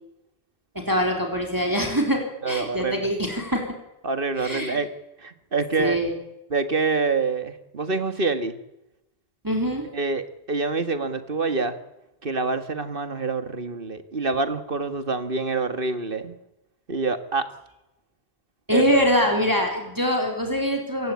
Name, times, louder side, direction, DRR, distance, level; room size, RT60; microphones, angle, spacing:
voice 1, 0.8-3.6 4.4-4.8 5.8-6.1 9.4-9.8 18.7-21.1, equal, 20° right, 1 dB, 3.8 m, -23 dB
voice 2, 2.4-3.1 4.0-4.9 5.2-6.0 6.5-8.5 9.9-11.8 12.2-16.3 16.9-17.5 18.7-18.8, right 3 dB, 60° right, 10 dB, 2.0 m, -26 dB
27.5 x 16.0 x 8.6 m, 0.91 s
omnidirectional pair, 1.1 m